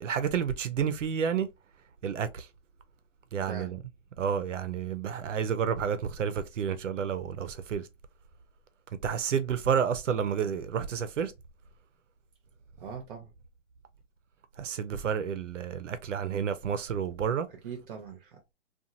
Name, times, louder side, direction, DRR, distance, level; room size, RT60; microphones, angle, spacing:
voice 1, 0.0-1.5 2.0-2.5 3.3-3.8 4.2-7.9 9.0-11.3 14.6-17.5, right 7 dB, 80° right, 0.7 m, -30 dB
voice 2, 3.4-3.8 12.8-13.3 17.6-18.5, right 6 dB, 45° right, 0.7 m, -42 dB
2.9 x 2.4 x 2.4 m
hypercardioid pair, 145°, 36 cm